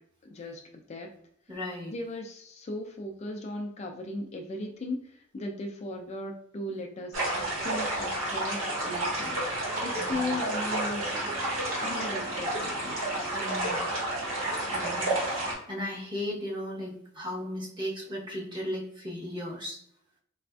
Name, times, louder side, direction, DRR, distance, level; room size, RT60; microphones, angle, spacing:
voice 1, 0.2-0.6 0.9-1.1 1.9-11.3 11.8-13.0, left 1 dB, 35° left, 3 dB, 0.3 m, -37 dB
voice 2, 1.5-1.9 10.0-10.2 13.3-13.9 14.7-19.8, left 1 dB, 25° right, -4 dB, 0.9 m, -36 dB
sound 1, 7.1-15.5, right 1 dB, 75° right, 1.3 m, -30 dB
4.0 x 2.4 x 2.3 m, 0.69 s
head